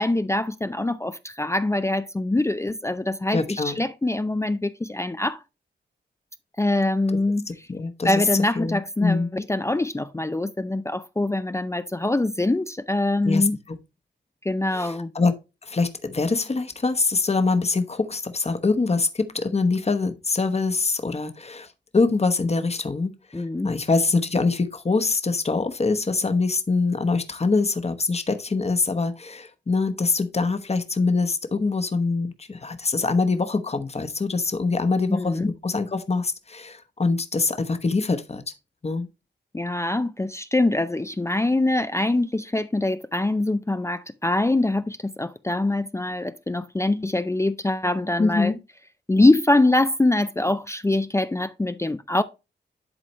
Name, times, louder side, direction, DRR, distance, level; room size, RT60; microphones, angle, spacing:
voice 1, 0.0-5.4 6.6-7.7 8.0-13.6 14.4-15.1 23.3-23.7 35.1-35.5 39.5-48.5 49.1-52.2, left 2 dB, 15° left, 0.4 m, -24 dB
voice 2, 3.3-3.8 7.1-7.2 7.5-8.2 8.6-9.3 13.2-13.8 14.7-15.3 15.6-38.4 38.8-39.1 48.2-48.6, left 3 dB, 35° left, 1.0 m, -24 dB
11.0 x 4.0 x 3.1 m
cardioid pair, 75°, 19 cm